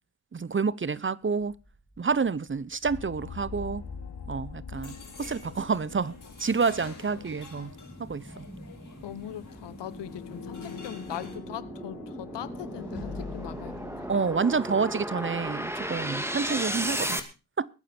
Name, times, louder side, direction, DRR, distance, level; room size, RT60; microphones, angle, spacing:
voice 1, 0.3-1.5 2.0-3.8 4.3-6.1 6.4-7.7 8.0-8.5 14.1-17.2 17.6-17.7, right 5 dB, 30° right, 0.7 m, -28 dB
sound 1, 2.5-2.6 3.1-17.2, equal, 5° right, 2.3 m, -36 dB
sound 2, 2.8-7.7 8.0-8.2 9.6-14.2, left 6 dB, 70° left, 2.5 m, -43 dB
sound 3, 4.7-11.4, left 4 dB, 50° left, 6.0 m, -48 dB
voice 2, 9.0-14.1, left 11 dB, 85° left, 1.1 m, -40 dB
21.5 x 9.2 x 4.3 m
cardioid pair, 50°, 41 cm